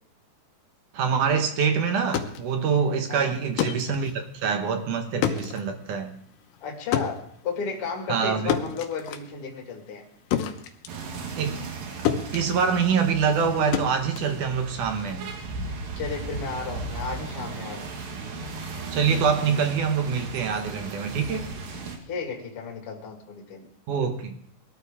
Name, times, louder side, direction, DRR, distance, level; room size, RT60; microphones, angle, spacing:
voice 1, 0.9-6.2 8.1-8.6 11.4-11.6 12.3-15.3 18.9-21.5 23.9-24.4, right 6 dB, 70° right, 6 dB, 2.6 m, -25 dB
sound 1, 1.9-11.8 12.1-15.0, left 9 dB, 80° left, 2.6 m, -31 dB
voice 2, 6.6-10.1 16.0-17.9 22.1-23.7, left 5 dB, 45° left, 2 dB, 2.6 m, -34 dB
sound 2, 10.9-22.0, right 4 dB, 85° right, 3.5 m, -36 dB
20.5 x 13.0 x 3.6 m, 0.64 s
omnidirectional pair, 4.0 m